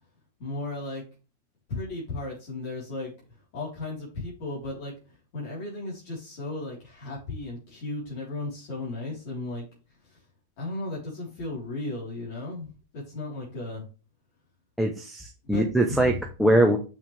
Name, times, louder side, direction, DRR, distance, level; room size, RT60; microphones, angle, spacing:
voice 1, 0.4-1.0 1.7-9.7 10.0-10.2 10.6-13.9 15.5-16.2, left 2 dB, 50° left, -6 dB, 3.6 m, -35 dB
voice 2, 14.8-16.8, right 1 dB, ahead, 1 dB, 0.7 m, -22 dB
7.1 x 6.1 x 3.3 m, 0.35 s
supercardioid pair, 155°, 0 cm